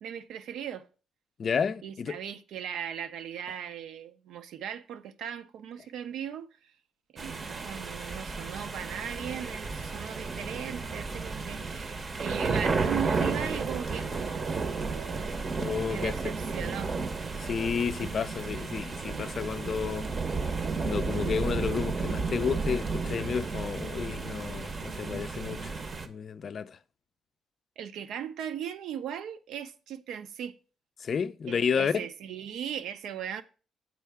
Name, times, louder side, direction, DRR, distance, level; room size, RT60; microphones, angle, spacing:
voice 1, 0.0-0.9 1.8-6.7 7.1-15.4 15.9-17.6 27.8-30.6 31.5-33.4, right 9 dB, 80° right, 0.5 m, -38 dB
voice 2, 1.4-2.1 15.6-16.3 17.4-20.1 20.8-25.8 26.0-26.8 31.0-32.0, left 6 dB, 50° left, 0.4 m, -31 dB
sound 1, 7.2-26.1, right 4 dB, 40° right, 0.7 m, -33 dB
7.4 x 4.6 x 3.4 m
cardioid pair, 85°, 0 cm